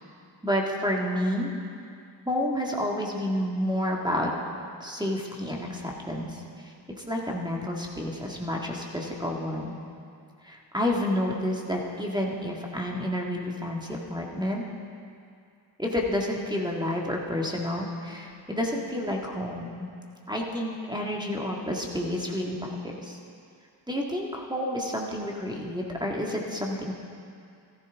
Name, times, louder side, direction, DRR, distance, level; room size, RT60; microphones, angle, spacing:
voice 1, 0.4-1.5 2.3-4.3 4.8-6.4 7.1-9.8 10.4-14.6 15.8-19.9 20.3-22.7 23.0-23.2 23.9-26.9, left 1 dB, 10° right, -2 dB, 1.9 m, -30 dB
14.5 x 13.5 x 3.7 m, 2.4 s
cardioid pair, 45°, 46 cm